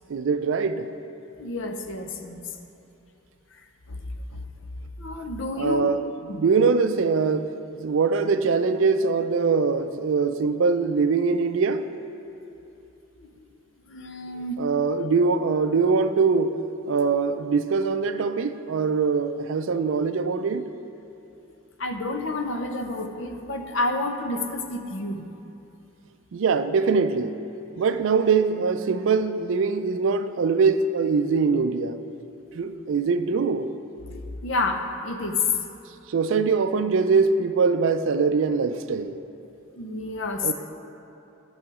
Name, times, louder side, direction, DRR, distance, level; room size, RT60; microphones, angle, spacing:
voice 1, 0.1-0.9 5.6-6.0 6.4-7.5 7.8-11.9 14.6-16.6 16.9-20.7 26.3-27.4 27.8-32.0 32.5-33.7 36.1-39.2 40.4-40.5, right 4 dB, 65° right, 0.4 m, -22 dB
voice 2, 1.4-2.5 3.9-4.0 4.3-4.4 5.0-5.9 6.3-6.4 13.2-13.5 13.9-14.7 21.8-25.2 34.4-35.4 39.7-40.5, left 2 dB, 60° left, 0.7 m, -30 dB
10.5 x 6.3 x 4.8 m
head